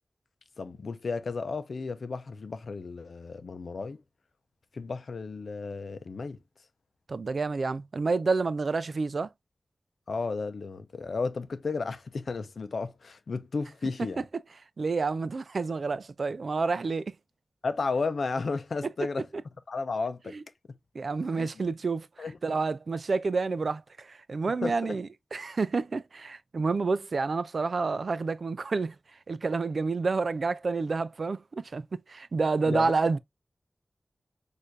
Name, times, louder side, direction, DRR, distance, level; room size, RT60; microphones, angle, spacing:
voice 1, 0.6-4.0 4.7-6.4 10.1-14.2 17.6-19.3 19.7-20.3 20.7-20.8 21.4-21.5 22.2-22.6 24.6-25.0 32.7-32.9, left 4 dB, 75° left, 0.6 m, -33 dB
voice 2, 7.1-9.3 14.8-17.1 20.3-20.4 20.9-29.0 29.3-33.2, right 4 dB, 60° right, 0.4 m, -29 dB
6.3 x 2.6 x 2.5 m
wide cardioid pair, 105°, 0 cm